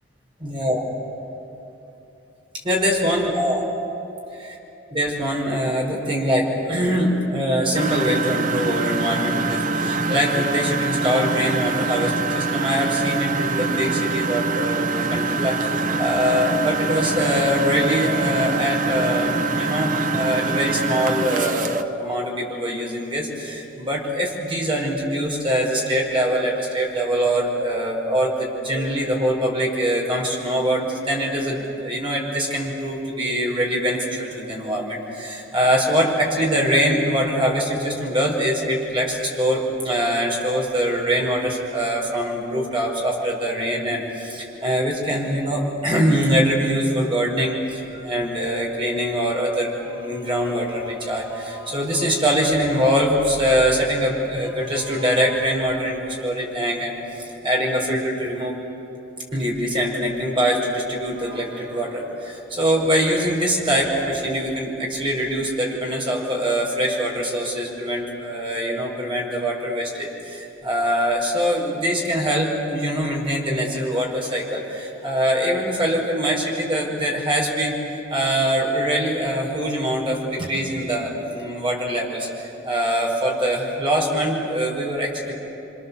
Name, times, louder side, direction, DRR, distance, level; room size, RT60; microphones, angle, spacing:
voice 1, 0.4-0.8 2.6-3.6 4.9-58.6 59.3-85.3, equal, 25° right, -1 dB, 5.1 m, -23 dB
Engine, 7.7-21.8, right 3 dB, 45° right, 0.9 m, -24 dB
29.0 x 25.5 x 7.2 m, 3.0 s
head